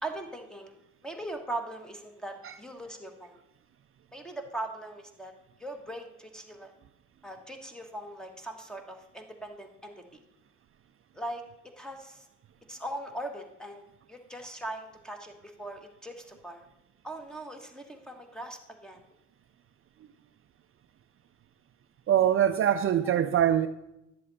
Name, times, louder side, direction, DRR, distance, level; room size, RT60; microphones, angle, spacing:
voice 1, 0.0-0.8 1.0-3.4 4.1-5.3 5.6-6.7 7.2-9.9 11.1-11.4 11.8-12.3 12.7-16.6 17.0-19.0, right 1 dB, ahead, 4 dB, 1.4 m, -40 dB
voice 2, 22.1-23.7, right 10 dB, 45° right, 10 dB, 0.4 m, -23 dB
11.0 x 7.5 x 4.1 m, 0.89 s
cardioid pair, 90°, 30 cm